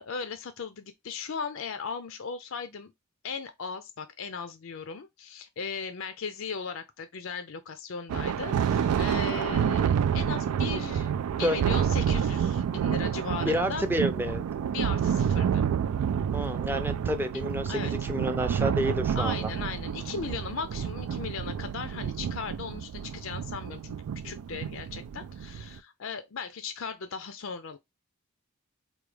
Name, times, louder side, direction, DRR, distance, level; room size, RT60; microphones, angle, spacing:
voice 1, 0.0-2.9 3.2-11.1 11.4-13.8 14.7-15.7 17.7-17.9 19.2-27.8, left 5 dB, 60° left, 0.5 m, -37 dB
Thunder, 8.1-25.8, right 8 dB, 80° right, 0.3 m, -29 dB
voice 2, 13.4-14.5 16.3-19.5, equal, 10° right, 0.5 m, -29 dB
4.6 x 2.3 x 3.2 m
head